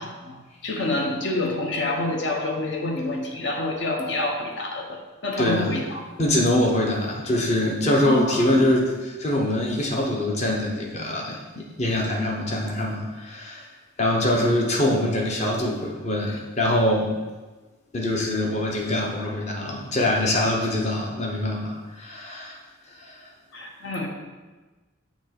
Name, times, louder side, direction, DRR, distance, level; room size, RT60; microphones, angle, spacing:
voice 1, 0.0-6.1 8.0-8.7 16.3-16.4 23.5-24.1, left 2 dB, 60° left, 1 dB, 1.0 m, -28 dB
voice 2, 5.4-5.7 6.2-13.7 14.0-17.2 17.9-22.6 23.0-23.2, left 1 dB, 35° left, -1 dB, 0.9 m, -24 dB
7.1 x 2.9 x 5.9 m, 1.3 s
head